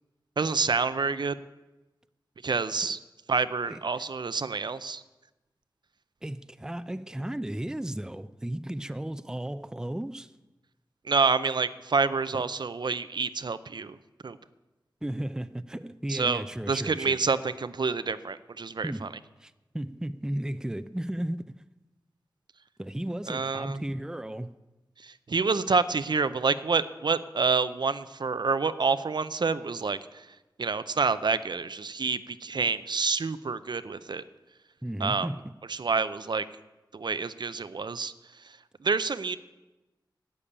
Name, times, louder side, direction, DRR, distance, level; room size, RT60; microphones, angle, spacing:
voice 1, 0.4-1.4 2.4-3.0 3.3-5.0 11.1-14.0 14.2-14.4 16.1-19.1 23.3-23.8 25.0-30.2 30.6-34.2 35.0-35.3 35.7-36.4 36.9-38.1 38.8-39.4, right 4 dB, 65° right, 0.6 m, -28 dB
voice 2, 6.2-10.3 12.3-12.5 15.0-17.2 18.8-21.5 22.8-24.6 34.8-35.5, right 1 dB, 10° right, 0.5 m, -35 dB
12.0 x 8.5 x 8.6 m
wide cardioid pair, 75°, 8 cm